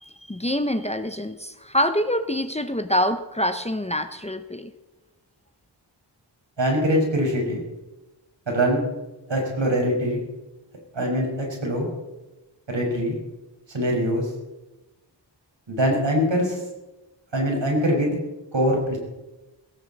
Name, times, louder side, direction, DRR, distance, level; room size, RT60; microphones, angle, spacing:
voice 1, 0.0-4.7, equal, 15° left, 9 dB, 0.9 m, -25 dB
voice 2, 6.6-7.6 8.5-8.8 9.3-10.2 10.9-11.9 12.7-13.2 13.7-14.3 15.7-16.6 17.3-18.2 18.5-19.0, equal, 75° right, 0 dB, 5.6 m, -23 dB
17.0 x 16.5 x 4.2 m, 1.1 s
wide cardioid pair, 60°, 45 cm